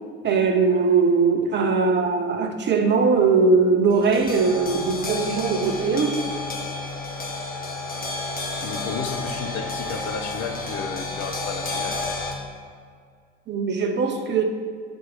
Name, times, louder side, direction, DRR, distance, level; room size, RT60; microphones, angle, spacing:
voice 1, 0.2-6.2 13.5-14.4, right 4 dB, 30° right, 5 dB, 0.7 m, -20 dB
sound 1, 3.9-12.3, left 3 dB, 25° left, 1.3 m, -31 dB
voice 2, 8.6-12.0, left 6 dB, 45° left, 5 dB, 0.8 m, -32 dB
5.3 x 4.6 x 6.2 m, 2.1 s
figure-of-eight pair, 60°, 37 cm